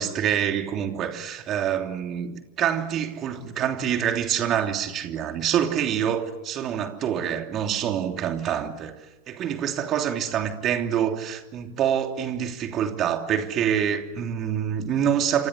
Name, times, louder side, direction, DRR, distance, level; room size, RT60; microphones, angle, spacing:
voice 1, 0.0-9.0 9.3-15.5, right 9 dB, 30° right, 3.1 m, -26 dB
29.0 x 25.5 x 7.8 m
figure-of-eight pair, 90°, 0 cm